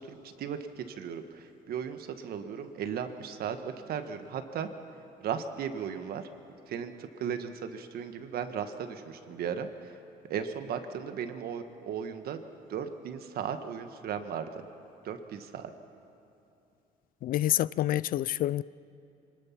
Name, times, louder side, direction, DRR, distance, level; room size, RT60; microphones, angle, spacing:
voice 1, 0.0-4.7 5.2-6.3 6.7-9.9 10.3-12.4 12.7-14.6 15.0-15.7, right 7 dB, 65° right, 1.5 m, -36 dB
voice 2, 17.2-18.6, left 13 dB, 55° left, 0.4 m, -27 dB
24.5 x 20.0 x 5.9 m
cardioid pair, 110°, 17 cm